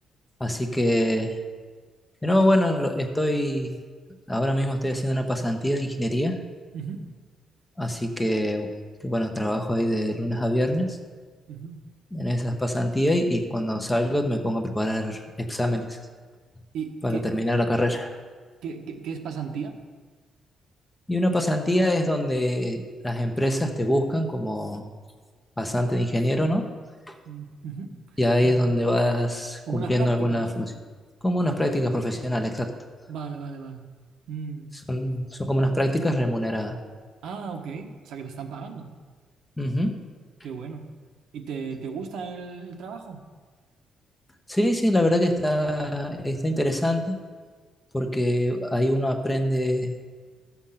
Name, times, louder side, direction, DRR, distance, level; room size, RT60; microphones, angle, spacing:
voice 1, 0.4-1.4 2.2-3.8 4.3-6.4 7.8-8.7 9.0-11.0 12.1-16.0 17.0-18.1 21.1-24.9 25.6-26.7 27.1-27.2 28.2-30.7 31.2-32.7 34.9-36.8 39.6-40.0 44.5-47.2 47.9-49.9, equal, 10° left, 4 dB, 1.0 m, -24 dB
voice 2, 11.5-11.8 16.7-17.3 18.6-19.8 27.2-27.9 29.7-30.5 33.1-33.9 34.3-34.7 37.2-38.9 40.4-40.9 41.3-43.2, right 6 dB, 85° right, 3 dB, 1.2 m, -35 dB
13.0 x 7.2 x 5.7 m, 1.5 s
cardioid pair, 145°, 0 cm